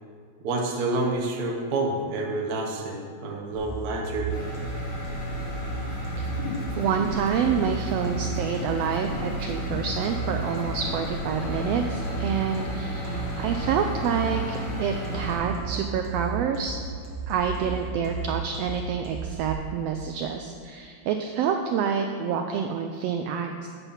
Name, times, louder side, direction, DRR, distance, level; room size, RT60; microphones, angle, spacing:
voice 1, 0.4-4.3, right 2 dB, 65° right, -1 dB, 0.9 m, -28 dB
sound 1, 3.5-19.5, right 3 dB, 50° right, 1.9 m, -34 dB
sound 2, 4.3-15.4, left 1 dB, 80° left, 3.8 m, -34 dB
sound 3, 6.2-11.0, left 3 dB, 65° left, 2.3 m, -38 dB
voice 2, 6.8-16.8 17.3-23.7, right 7 dB, 85° right, 5 dB, 1.4 m, -28 dB
8.9 x 6.9 x 5.6 m, 2.1 s
omnidirectional pair, 3.3 m